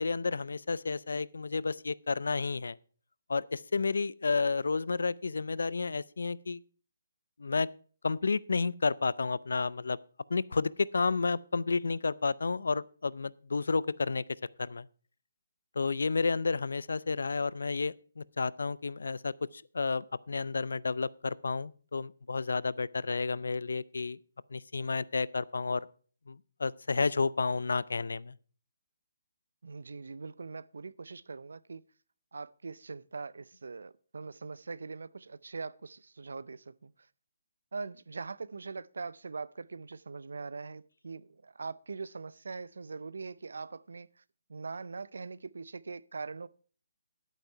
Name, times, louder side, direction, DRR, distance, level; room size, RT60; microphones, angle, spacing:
voice 1, 0.0-2.8 3.3-6.6 7.4-7.7 8.0-10.0 10.3-14.2 14.6-14.9 15.7-24.2 24.5-25.9 26.3-28.3, left 4 dB, 90° left, 0.5 m, -31 dB
voice 2, 29.6-31.8 32.3-36.9 37.7-44.1 44.5-46.5, right 4 dB, 80° right, 0.6 m, -42 dB
11.0 x 9.0 x 4.5 m
hypercardioid pair, 180°, 0 cm